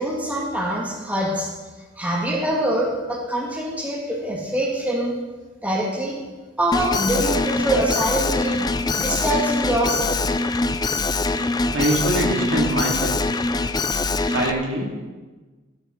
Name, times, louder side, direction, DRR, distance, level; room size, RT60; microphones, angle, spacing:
voice 1, 0.0-1.5 2.0-5.1 5.6-6.2 6.6-8.6 9.0-10.3, right 1 dB, 10° right, -3 dB, 2.4 m, -24 dB
Alarm, 6.7-14.5, left 3 dB, 20° left, 0.5 m, -23 dB
voice 2, 11.7-13.2 14.3-15.1, right 1 dB, 80° right, 0 dB, 2.6 m, -24 dB
14.0 x 11.5 x 4.6 m, 1.3 s
head